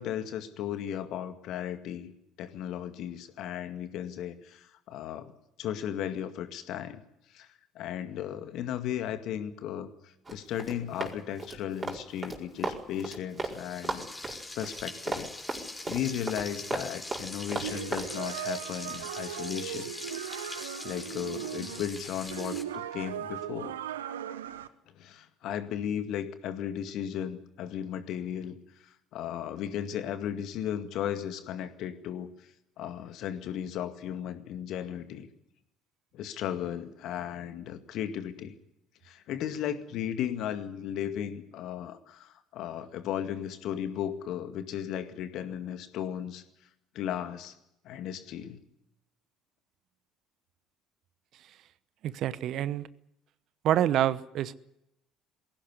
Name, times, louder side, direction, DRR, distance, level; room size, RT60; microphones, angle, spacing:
voice 1, 0.0-2.1 2.4-7.0 7.3-7.5 7.8-15.3 15.9-19.9 20.4-20.5 20.8-23.8 25.0-32.5 32.8-35.3 36.1-38.5 39.0-46.4 46.9-47.5 47.8-48.6, left 10 dB, 55° left, 9 dB, 2.0 m, -35 dB
Run, 10.3-13.6 13.8-18.1, right 3 dB, 25° right, 5.0 m, -35 dB
Frying (food), 13.5-22.6, left 2 dB, 15° left, 4.6 m, -42 dB
sound 1, 17.6-24.7, right 10 dB, 75° right, 1.0 m, -38 dB
voice 2, 52.0-52.9 53.6-54.5, right 11 dB, 55° right, 18 dB, 0.9 m, -27 dB
21.0 x 17.0 x 9.7 m, 0.83 s
figure-of-eight pair, 55°, 0 cm